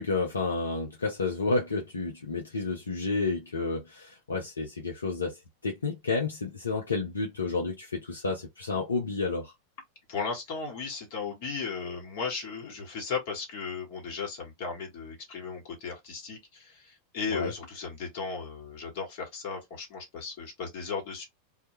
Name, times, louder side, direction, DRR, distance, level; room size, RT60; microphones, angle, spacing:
voice 1, 0.0-9.5 17.3-17.5, left 3 dB, 80° left, 0.5 m, -30 dB
voice 2, 10.1-21.2, left 5 dB, 55° left, 1.1 m, -36 dB
2.2 x 2.0 x 2.8 m
figure-of-eight pair, 90°, 0 cm